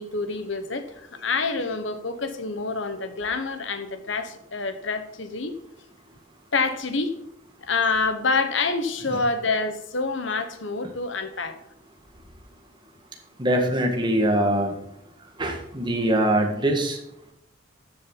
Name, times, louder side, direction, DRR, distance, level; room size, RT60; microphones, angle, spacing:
voice 1, 0.0-5.6 6.5-7.1 7.6-11.6, left 4 dB, 70° left, 9 dB, 1.3 m, -27 dB
voice 2, 13.4-14.7 15.4-17.0, right 1 dB, 25° right, 3 dB, 1.8 m, -23 dB
13.0 x 7.6 x 4.1 m, 0.77 s
head